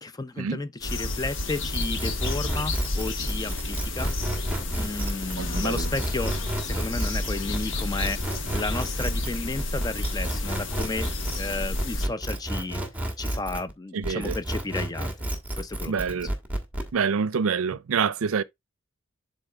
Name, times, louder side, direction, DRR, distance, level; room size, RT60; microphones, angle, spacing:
voice 1, 0.0-11.1 11.4-12.8 13.2-15.1 15.6-16.2, left 3 dB, 20° left, 0.5 m, -33 dB
sound 1, 0.8-12.1, left 2 dB, 65° left, 1.2 m, -31 dB
sound 2, 1.5-13.7 14.0-16.9, right 1 dB, 10° right, 1.4 m, -31 dB
voice 2, 5.4-5.9 13.9-14.4 15.9-16.3 16.9-18.4, right 6 dB, 85° right, 0.5 m, -26 dB
11.5 x 3.9 x 2.3 m
head